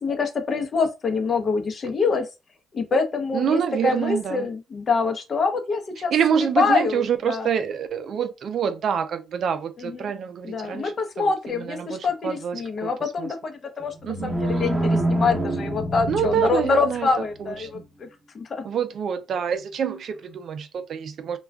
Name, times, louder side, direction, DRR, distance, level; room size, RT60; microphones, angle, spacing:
voice 1, 0.0-2.3 2.7-6.1 6.6-7.5 9.8-10.1 10.4-17.8 18.3-18.6, left 4 dB, 45° left, 0.7 m, -25 dB
voice 2, 3.3-4.5 6.1-13.3 14.0-14.7 16.1-17.8 18.6-21.4, right 8 dB, 60° right, 0.4 m, -27 dB
sound 1, 13.8-17.1, right 1 dB, 20° right, 0.8 m, -26 dB
2.3 x 2.2 x 3.4 m
cardioid pair, 90°, 0 cm